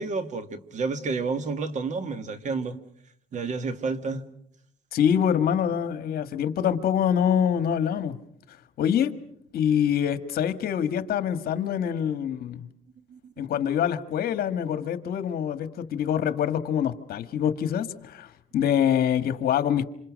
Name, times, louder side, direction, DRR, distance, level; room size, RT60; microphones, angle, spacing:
voice 1, 0.0-2.8 3.3-4.2 13.1-13.5, right 4 dB, 45° right, 10 dB, 2.1 m, -30 dB
voice 2, 4.9-8.2 8.8-9.1 9.5-12.7 13.4-19.9, left 9 dB, 65° left, 11 dB, 1.7 m, -25 dB
27.5 x 27.0 x 6.4 m, 0.69 s
cardioid pair, 110°, 17 cm